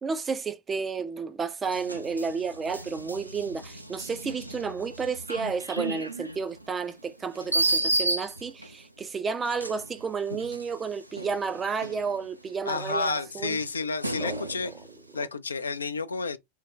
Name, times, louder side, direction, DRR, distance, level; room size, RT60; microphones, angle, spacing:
voice 1, 0.0-13.6 14.2-14.5, right 5 dB, 20° right, 0.4 m, -31 dB
sound 1, 1.6-8.8 9.4-12.5 13.0-15.0, right 2 dB, 85° right, 0.5 m, -33 dB
voice 2, 12.7-14.7 15.1-16.4, left 4 dB, 75° left, 0.4 m, -30 dB
3.4 x 2.2 x 3.8 m
figure-of-eight pair, 90°, 0 cm